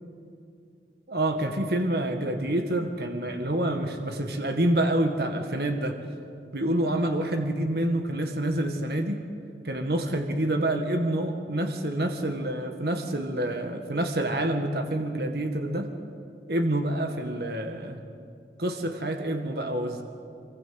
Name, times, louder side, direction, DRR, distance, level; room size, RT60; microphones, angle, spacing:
voice 1, 1.1-6.0 6.5-9.2 9.6-15.9 16.5-18.0 18.6-20.0, right 1 dB, 60° right, 5 dB, 1.8 m, -27 dB
24.0 x 23.0 x 7.8 m, 2.4 s
head